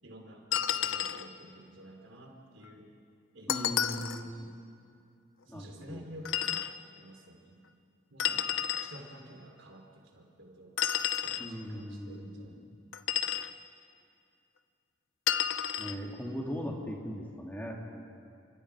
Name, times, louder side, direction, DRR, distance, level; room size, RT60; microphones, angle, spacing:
voice 1, 0.0-2.9 3.3-4.5 5.4-7.6 8.1-8.5 8.8-10.8 11.2-12.8 13.2-13.4, right 1 dB, 75° right, 1 dB, 3.8 m, -51 dB
sound 1, 0.5-1.3 3.5-4.2 6.3-6.7 8.2-8.9 10.8-11.5 12.9-13.5 15.3-16.0, left 10 dB, 85° left, 0.8 m, -31 dB
voice 2, 3.5-4.5 5.5-6.0 11.4-12.5 15.8-18.1, equal, 10° left, -1 dB, 2.9 m, -39 dB
29.5 x 25.5 x 5.0 m, 2.5 s
head